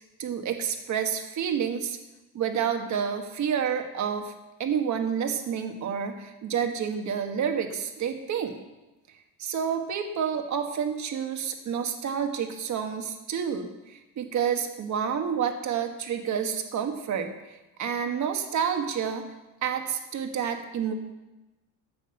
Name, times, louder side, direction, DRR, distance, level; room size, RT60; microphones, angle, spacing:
voice 1, 0.2-2.0 2.3-4.3 4.6-8.6 9.4-17.3 17.8-19.3 19.6-20.9, right 7 dB, 45° right, 5 dB, 1.6 m, -29 dB
14.0 x 7.8 x 6.7 m, 1.0 s
cardioid pair, 130°, 40 cm